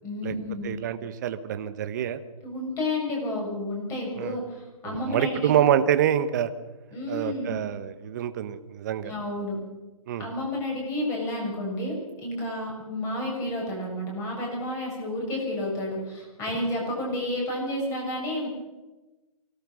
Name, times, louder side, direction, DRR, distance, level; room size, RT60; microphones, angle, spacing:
voice 1, 0.0-0.8 2.4-5.5 6.9-7.6 9.0-9.6 10.2-18.5, left 1 dB, 15° left, -1 dB, 6.7 m, -31 dB
voice 2, 0.6-2.2 4.2-4.4 4.8-6.5 7.1-9.1 10.1-10.3, right 10 dB, 30° right, 11 dB, 1.2 m, -26 dB
24.0 x 17.5 x 6.3 m, 1.1 s
hypercardioid pair, 160°, 19 cm